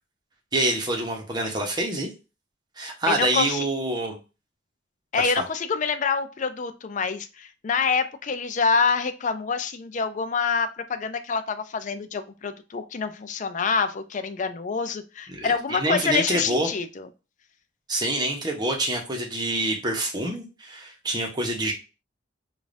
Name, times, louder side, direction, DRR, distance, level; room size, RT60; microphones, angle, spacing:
voice 1, 0.5-2.1 2.8-4.2 5.2-5.4 15.3-16.7 17.9-21.7, right 1 dB, 20° right, 1 dB, 0.9 m, -26 dB
voice 2, 3.1-3.7 5.1-17.1, left 5 dB, 40° left, 9 dB, 0.4 m, -26 dB
5.0 x 2.5 x 2.6 m, 0.30 s
head